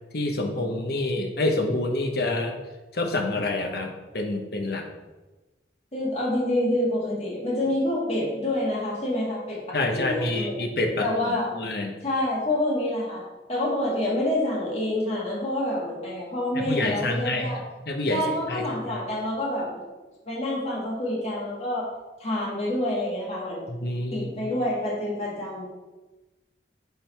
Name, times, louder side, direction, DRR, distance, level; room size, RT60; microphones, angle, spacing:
voice 1, 0.1-2.5 2.9-4.9 9.7-12.0 16.5-17.5 17.9-18.2 18.5-18.6 23.7-24.3, left 2 dB, 60° left, 3 dB, 0.9 m, -27 dB
voice 2, 5.9-10.6 11.0-11.6 12.0-13.2 13.5-17.6 18.1-19.8 20.3-21.9 22.2-23.7 24.1-25.7, left 1 dB, 35° left, -5 dB, 1.8 m, -27 dB
7.2 x 3.9 x 4.5 m, 1.2 s
head